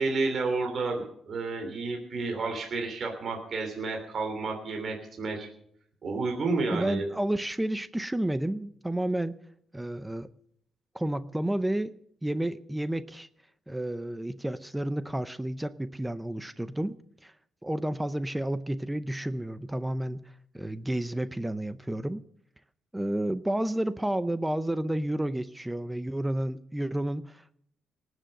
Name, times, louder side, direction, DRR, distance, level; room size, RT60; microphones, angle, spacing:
voice 1, 0.0-5.5 6.0-7.1, right 3 dB, 50° right, 3 dB, 3.2 m, -31 dB
voice 2, 6.7-9.3 9.7-10.3 10.9-12.0 12.2-13.3 13.7-17.0 17.2-17.3 17.6-20.2 20.5-22.2 22.9-27.5, right 1 dB, 10° right, 13 dB, 0.6 m, -31 dB
18.5 x 7.8 x 7.6 m, 0.69 s
cardioid pair, 90°, 0 cm